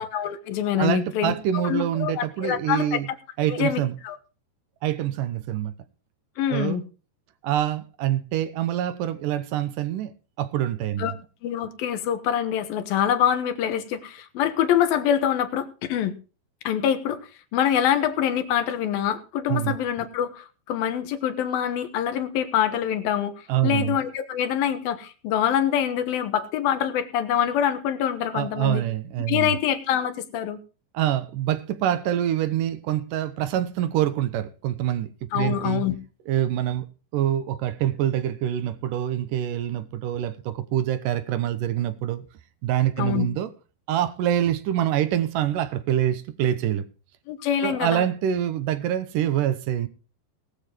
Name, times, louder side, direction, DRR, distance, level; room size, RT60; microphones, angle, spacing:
voice 1, 0.0-3.0 3.5-4.2 6.4-6.8 11.0-11.1 11.4-16.1 16.6-17.2 17.5-28.8 29.3-30.6 35.3-36.0 43.0-43.3 47.3-48.1, left 9 dB, 65° left, 2.6 m, -25 dB
voice 2, 0.8-3.1 3.4-4.0 4.8-5.7 6.5-6.8 7.4-11.1 19.5-19.8 23.5-24.0 28.3-29.6 30.9-35.1 35.3-35.8 36.3-36.9 37.1-42.3 42.6-43.5 43.9-46.8 47.6-49.9, right 11 dB, 75° right, 1.9 m, -25 dB
20.0 x 7.1 x 4.4 m
omnidirectional pair, 5.2 m